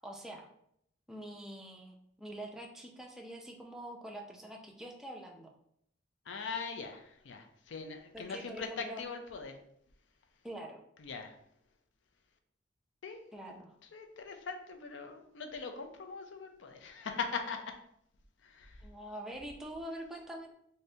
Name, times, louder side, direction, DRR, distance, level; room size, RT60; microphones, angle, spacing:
voice 1, 0.0-0.5 1.1-5.5 8.1-9.0 10.4-10.8 13.3-13.7 18.8-20.5, right 1 dB, 5° right, 0 dB, 0.4 m, -45 dB
voice 2, 6.3-9.6 11.0-11.3 13.0-13.2 13.9-17.7 18.4-18.9, left 5 dB, 70° left, 5 dB, 0.5 m, -41 dB
2.7 x 2.6 x 3.3 m, 0.72 s
head